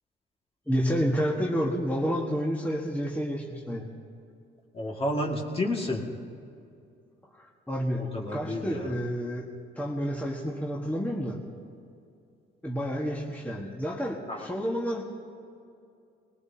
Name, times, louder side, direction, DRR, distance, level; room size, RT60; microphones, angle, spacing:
voice 1, 0.7-3.9 7.4-9.4 9.8-11.4 12.6-15.0, equal, 10° left, -2 dB, 1.5 m, -30 dB
voice 2, 4.7-6.0 8.1-8.9 14.3-14.5, left 1 dB, 30° left, 0 dB, 2.0 m, -30 dB
20.5 x 19.5 x 2.8 m, 2.5 s
cardioid pair, 90°, 20 cm